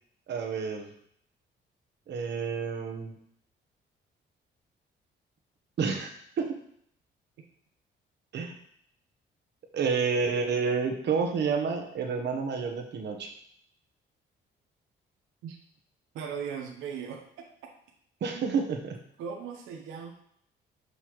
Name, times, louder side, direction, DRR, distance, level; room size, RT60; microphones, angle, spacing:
voice 1, 0.3-0.9 2.1-3.1 5.8-6.1 6.4-6.6 8.3-8.6 9.7-13.3 18.2-19.0, right 5 dB, 60° right, 4 dB, 1.1 m, -29 dB
voice 2, 16.1-17.2 19.2-20.1, right 7 dB, 90° right, 1 dB, 0.8 m, -37 dB
6.4 x 5.4 x 3.0 m, 0.67 s
cardioid pair, 90°, 20 cm